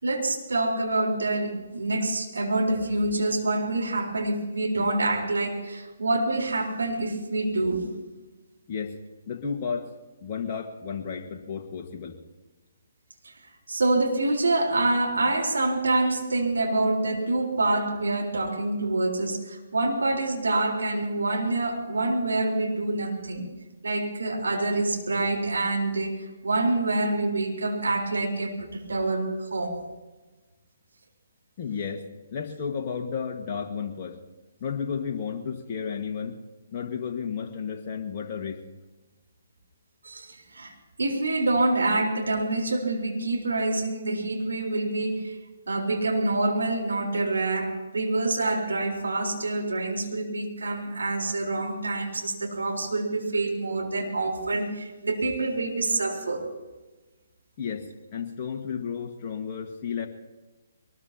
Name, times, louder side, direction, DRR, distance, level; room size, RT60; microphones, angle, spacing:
voice 1, 0.0-7.9 13.2-13.3 13.7-23.5 23.8-29.8 40.0-40.7 41.0-45.4 45.7-56.5, right 2 dB, 75° right, 0 dB, 4.0 m, -26 dB
voice 2, 9.3-9.9 10.2-12.2 31.6-34.2 34.6-36.4 36.7-38.6 57.6-60.1, left 6 dB, 35° left, 1 dB, 1.7 m, -32 dB
23.0 x 20.0 x 2.9 m, 1.2 s
figure-of-eight pair, 135°, 0 cm